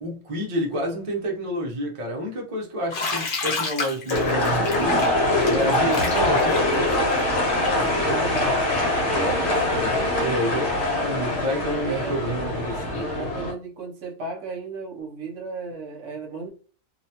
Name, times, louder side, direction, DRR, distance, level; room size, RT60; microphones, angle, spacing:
voice 1, 0.0-6.7 9.7-9.9 10.2-13.2, equal, 45° right, 0.4 m, -29 dB
Bathtub (filling or washing), 2.9-8.6, left 4 dB, 55° left, 1.1 m, -31 dB
sound 1, 4.1-13.5, left 1 dB, 75° left, 1.3 m, -23 dB
voice 2, 8.0-8.7 9.1-9.9 11.8-12.3 13.1-16.5, right 3 dB, 65° right, 0.9 m, -33 dB
2.8 x 2.1 x 2.8 m
omnidirectional pair, 1.6 m